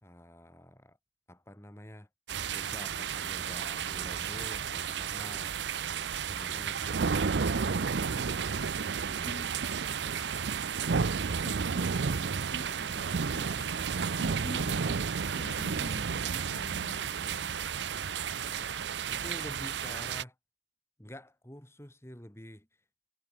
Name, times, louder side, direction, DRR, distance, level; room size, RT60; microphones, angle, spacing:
voice 1, 0.0-1.0 1.3-2.1 2.5-5.6 6.3-9.3 17.7-20.3 21.0-22.7, equal, 15° left, 3.0 m, -49 dB
sound 1, 2.3-20.2, right 6 dB, 80° right, 0.6 m, -32 dB
voice 2, 9.2-9.6 11.3-17.6 19.9-20.1, left 1 dB, 50° left, 2.9 m, -47 dB
head